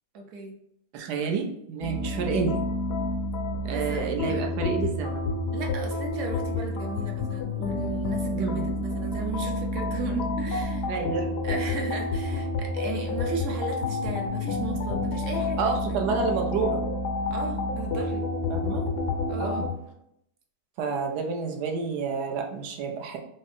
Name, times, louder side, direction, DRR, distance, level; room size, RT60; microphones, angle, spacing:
voice 1, 0.1-0.6 3.7-4.4 5.5-10.9 11.4-16.0 17.3-18.2 19.3-19.7, right 3 dB, 60° right, 2 dB, 0.8 m, -36 dB
voice 2, 0.9-2.6 3.6-5.3 8.4-8.7 10.9-11.3 15.6-16.8 18.5-18.8 19.4-19.7 20.8-23.2, right 5 dB, 85° right, 2 dB, 1.2 m, -29 dB
sound 1, 1.8-19.7, left 2 dB, 80° left, 0.5 m, -29 dB
5.1 x 2.0 x 2.6 m, 0.75 s
omnidirectional pair, 1.7 m